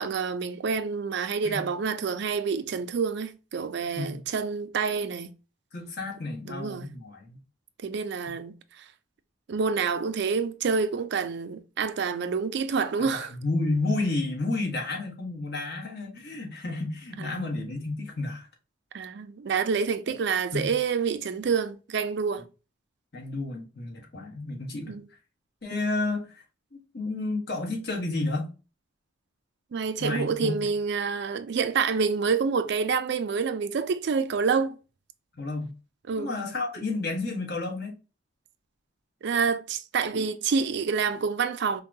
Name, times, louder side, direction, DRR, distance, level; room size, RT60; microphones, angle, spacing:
voice 1, 0.0-5.3 6.5-6.9 7.8-8.9 9.5-13.3 17.2-17.3 18.9-22.5 24.9-25.1 29.7-34.8 36.1-36.3 39.2-41.8, right 5 dB, 60° right, 0.4 m, -28 dB
voice 2, 5.7-7.4 13.1-18.5 20.1-20.2 20.5-20.7 23.1-24.9 25.6-26.4 26.7-28.5 30.0-30.5 35.4-35.7 36.2-37.9, left 2 dB, 55° left, 1.3 m, -31 dB
5.3 x 2.2 x 2.7 m
head